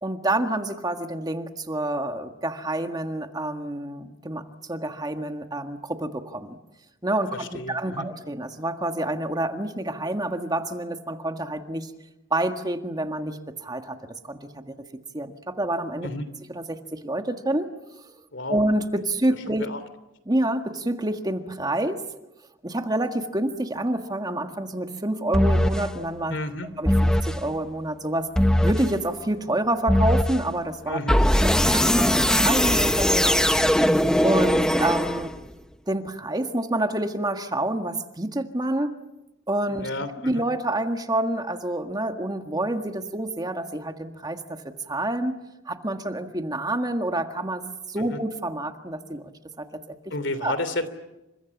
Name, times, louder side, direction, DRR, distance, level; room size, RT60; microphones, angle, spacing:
voice 1, 0.0-6.6 7.0-11.9 12.3-14.0 14.3-14.7 15.1-16.1 16.5-17.7 18.5-19.7 20.3-22.0 22.6-26.4 26.8-28.3 28.6-31.0 31.4-33.5 34.2-35.3 35.9-38.9 39.5-39.9 40.2-45.4 45.7-47.6 47.9-49.3 49.6-50.0 50.4-50.5, right 1 dB, 20° right, 6 dB, 1.7 m, -28 dB
voice 2, 7.3-8.1 16.0-16.3 18.3-18.6 19.5-19.8 26.3-26.7 30.9-31.2 39.7-40.4 48.0-48.2 50.1-50.9, left 2 dB, 70° left, 13 dB, 3.1 m, -31 dB
sound 1, 25.3-25.9 26.9-27.4 28.4-28.9 29.9-30.4 31.1-35.5, equal, 5° left, 1.1 m, -20 dB
30.0 x 26.0 x 7.3 m, 0.95 s
head